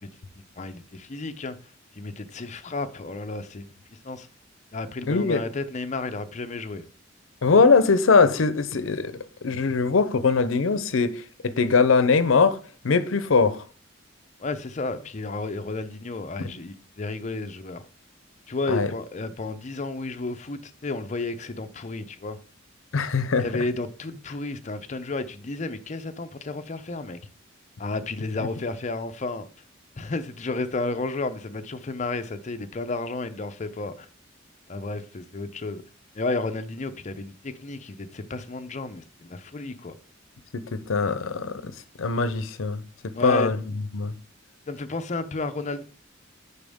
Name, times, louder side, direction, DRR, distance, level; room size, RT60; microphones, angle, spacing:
voice 1, 0.0-1.6 1.9-4.3 4.7-6.8 14.4-17.8 18.5-22.4 23.4-27.2 27.8-29.5 30.0-34.1 34.7-35.8 36.1-40.0 43.1-43.5 44.7-45.8, left 3 dB, 35° left, 0.6 m, -32 dB
voice 2, 5.1-5.4 7.4-12.6 12.8-13.6 18.7-18.9 22.9-23.4 40.7-41.7 42.0-42.8 43.2-43.6 43.9-44.1, left 4 dB, 85° left, 0.6 m, -21 dB
10.5 x 4.1 x 3.6 m
head